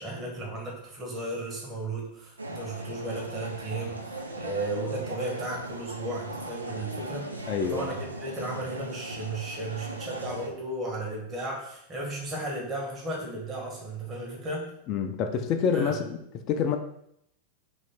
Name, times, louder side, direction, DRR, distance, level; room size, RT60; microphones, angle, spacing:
voice 1, 0.0-14.7 15.7-15.9, right 2 dB, 25° right, -3 dB, 1.3 m, -35 dB
sound 1, 2.4-10.5, right 2 dB, 80° right, 0.4 m, -38 dB
voice 2, 7.5-7.9 14.9-16.2 16.5-16.8, left 6 dB, 35° left, 6 dB, 0.5 m, -27 dB
3.2 x 3.1 x 4.3 m, 0.74 s
figure-of-eight pair, 90°, 0 cm